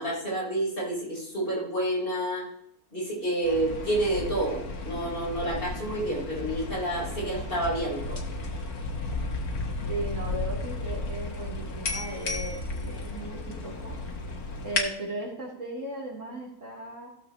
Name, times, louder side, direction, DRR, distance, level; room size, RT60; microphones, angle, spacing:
voice 1, 0.0-2.5 2.9-8.2, right 1 dB, 35° left, -4 dB, 4.6 m, -29 dB
sound 1, 3.4-14.8, left 2 dB, 75° left, 2.1 m, -34 dB
voice 2, 9.9-14.0 14.6-17.1, right 1 dB, 55° right, -3 dB, 3.7 m, -37 dB
16.5 x 7.5 x 3.0 m, 0.77 s
omnidirectional pair, 1.5 m